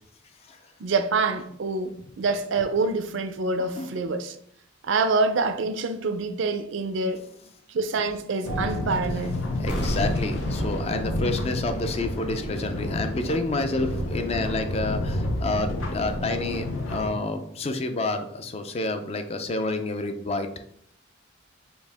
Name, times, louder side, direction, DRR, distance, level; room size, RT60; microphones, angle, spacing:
voice 1, 0.8-4.4 4.8-7.2 7.7-9.4, right 3 dB, 70° right, 0.4 m, -26 dB
sound 1, 8.4-17.1, left 1 dB, 90° left, 0.7 m, -30 dB
voice 2, 9.6-20.5, left 2 dB, 30° left, 0.4 m, -29 dB
sound 2, 9.7-12.6 12.8-12.9, equal, 60° left, 0.9 m, -33 dB
4.6 x 2.7 x 3.4 m
head